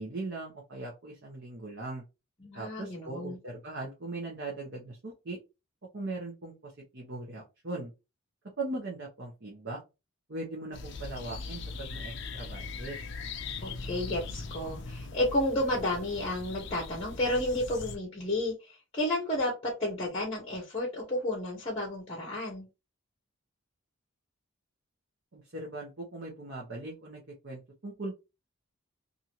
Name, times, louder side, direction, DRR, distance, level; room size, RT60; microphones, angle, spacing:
voice 1, 0.0-2.0 2.5-5.4 5.9-7.9 8.6-9.8 10.3-13.0 25.3-28.1, right 2 dB, 50° right, -2 dB, 0.8 m, -39 dB
voice 2, 2.4-3.4 13.6-19.5 19.8-22.7, left 1 dB, 25° left, 0 dB, 0.8 m, -31 dB
sound 1, 10.7-18.0, left 3 dB, 55° left, 0.4 m, -40 dB
2.7 x 2.5 x 2.9 m, 0.26 s
head